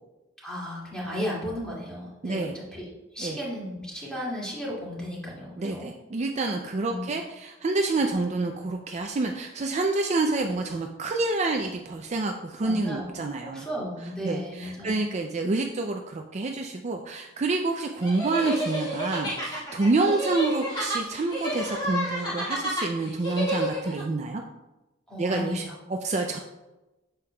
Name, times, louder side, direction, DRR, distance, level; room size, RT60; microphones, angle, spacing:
voice 1, 0.4-5.9 6.8-7.1 12.6-15.0 25.1-25.7, equal, 5° left, -6 dB, 2.2 m, -35 dB
voice 2, 2.2-2.5 3.2-3.4 5.6-13.7 14.2-24.4 25.2-25.6 25.9-26.4, right 3 dB, 35° right, 3 dB, 0.4 m, -28 dB
sound 1, 18.0-24.0, equal, 25° left, 2.2 m, -30 dB
8.3 x 6.9 x 2.3 m, 1.0 s
head